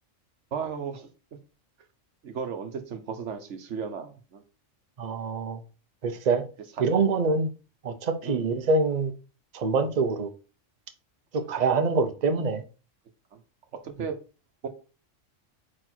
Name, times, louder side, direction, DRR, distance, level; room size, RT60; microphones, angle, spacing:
voice 1, 0.5-1.1 2.2-4.4 6.0-6.2 6.8-6.9 8.2-8.5 9.7-9.9 13.3-13.4 13.8-14.1 14.6-14.7, right 6 dB, 65° right, 1.2 m, -35 dB
voice 2, 5.0-5.6 6.0-6.5 6.8-7.5 7.8-9.1 9.5-10.3 11.3-12.6, right 4 dB, 40° right, 0.7 m, -25 dB
4.8 x 4.5 x 4.3 m
omnidirectional pair, 1.3 m